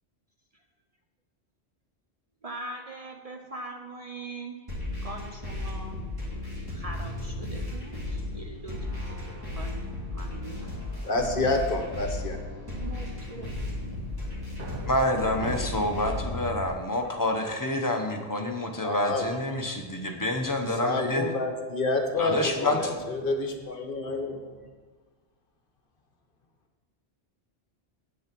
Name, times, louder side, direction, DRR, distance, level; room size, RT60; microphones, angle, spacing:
voice 1, 2.4-4.6 5.0-6.0 6.7-8.8 9.1-10.8 12.7-14.0, right 2 dB, 40° right, 2 dB, 0.8 m, -41 dB
sound 1, 4.7-16.7, left 2 dB, 20° right, 2.7 m, -35 dB
voice 2, 11.0-12.4 18.8-19.3 20.8-24.4, left 2 dB, 55° left, 5 dB, 1.1 m, -28 dB
sound 2, 14.6-17.9 18.4-19.0 19.5-19.9 21.3-24.7, right 3 dB, 55° right, 1.4 m, -45 dB
voice 3, 14.9-21.3 22.2-22.9, left 1 dB, 20° left, 3 dB, 0.9 m, -28 dB
8.7 x 6.3 x 6.0 m, 1.4 s
omnidirectional pair, 1.1 m